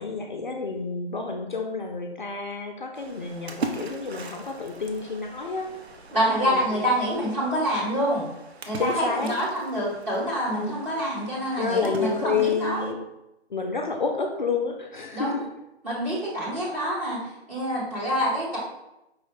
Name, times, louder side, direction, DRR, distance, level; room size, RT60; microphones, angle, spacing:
voice 1, 0.0-5.9 6.4-6.8 8.8-9.4 10.6-10.7 11.6-13.0 13.5-15.5, left 4 dB, 45° left, 3 dB, 0.5 m, -29 dB
Splash splatter, 2.9-12.9, right 4 dB, 65° right, 0.7 m, -41 dB
voice 2, 6.1-8.2 8.7-12.8 15.1-15.3 15.8-17.2 17.5-18.6, equal, 15° right, -7 dB, 0.8 m, -26 dB
5.0 x 2.1 x 4.8 m, 0.92 s
figure-of-eight pair, 155°, 34 cm